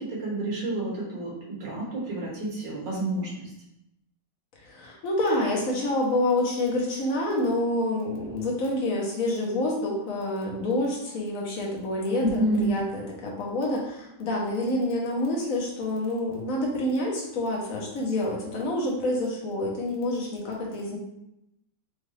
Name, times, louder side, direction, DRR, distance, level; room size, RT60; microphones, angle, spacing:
voice 1, 0.0-3.5 12.1-12.8, right 1 dB, 85° right, -5 dB, 2.2 m, -29 dB
voice 2, 4.6-21.0, left 1 dB, 55° left, -2 dB, 1.4 m, -27 dB
5.0 x 2.6 x 3.3 m, 0.84 s
omnidirectional pair, 1.9 m